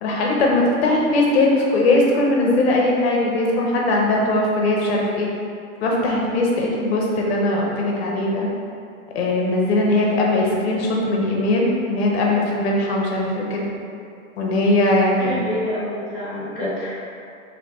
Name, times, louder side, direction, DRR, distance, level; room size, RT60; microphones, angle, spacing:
voice 1, 0.0-5.3 5.8-8.5 9.1-13.7 14.4-15.4 16.4-16.6, left 2 dB, 45° left, -2 dB, 0.8 m, -20 dB
voice 2, 15.2-16.9, left 1 dB, ahead, -18 dB, 0.4 m, -27 dB
3.2 x 3.2 x 4.1 m, 2.5 s
hypercardioid pair, 160°, 43 cm